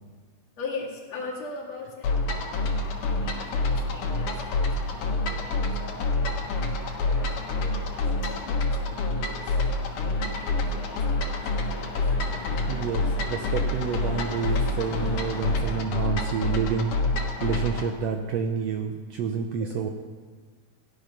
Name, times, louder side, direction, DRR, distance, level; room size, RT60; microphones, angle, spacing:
voice 1, 0.6-2.6 3.2-6.5 7.0-9.6 10.1-12.1 19.1-19.2 19.6-19.9, left 3 dB, 55° left, -3 dB, 3.3 m, -41 dB
sound 1, 2.0-17.9, left 2 dB, 85° left, 3.1 m, -27 dB
sound 2, 2.5-15.8, left 1 dB, 40° left, 3.3 m, -44 dB
voice 2, 12.7-19.9, right 6 dB, 75° right, 5 dB, 1.6 m, -29 dB
15.5 x 10.5 x 6.0 m, 1.5 s
omnidirectional pair, 3.6 m